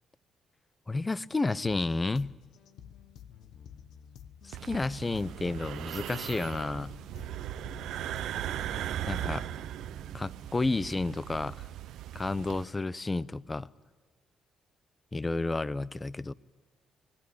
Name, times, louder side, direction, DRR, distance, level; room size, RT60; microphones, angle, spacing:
voice 1, 0.9-2.4 4.4-7.0 9.1-9.4 10.1-11.7 12.1-13.7 15.1-16.3, left 3 dB, 20° left, 0.7 m, -31 dB
sound 1, 1.7-9.7, left 9 dB, 80° left, 1.1 m, -51 dB
sound 2, 4.5-12.6, right 12 dB, 85° right, 0.7 m, -38 dB
sound 3, 8.3-13.0, right 3 dB, 25° right, 1.4 m, -50 dB
25.0 x 18.0 x 8.7 m
cardioid pair, 90°, 0 cm